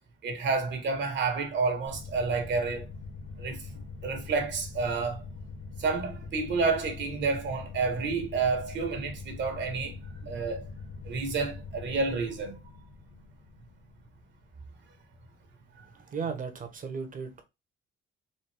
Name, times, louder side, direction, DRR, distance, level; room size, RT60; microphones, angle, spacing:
voice 1, 0.2-2.9 3.4-5.2 5.8-10.0 10.2-10.6 11.0-12.6 15.8-15.9, right 4 dB, 60° right, 1.5 m, -30 dB
sound 1, 1.9-15.1, left 4 dB, 70° left, 1.2 m, -43 dB
voice 2, 16.0-17.4, right 5 dB, 40° right, 1.2 m, -35 dB
4.2 x 2.6 x 3.4 m
cardioid pair, 100°, 21 cm